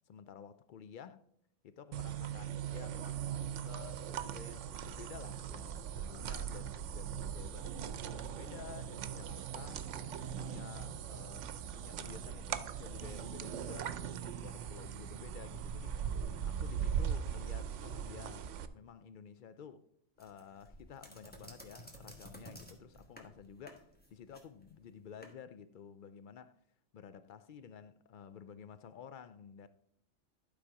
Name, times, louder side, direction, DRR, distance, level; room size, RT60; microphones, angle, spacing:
voice 1, 0.1-1.2 1.6-3.2 3.6-9.8 10.4-19.9 20.2-26.5 26.9-29.7, left 7 dB, 60° left, 0.5 m, -52 dB
sound 1, 1.9-18.7, right 8 dB, 85° right, 0.9 m, -40 dB
sound 2, 20.2-25.3, equal, 10° left, 1.2 m, -54 dB
11.5 x 4.0 x 4.8 m
omnidirectional pair, 1.2 m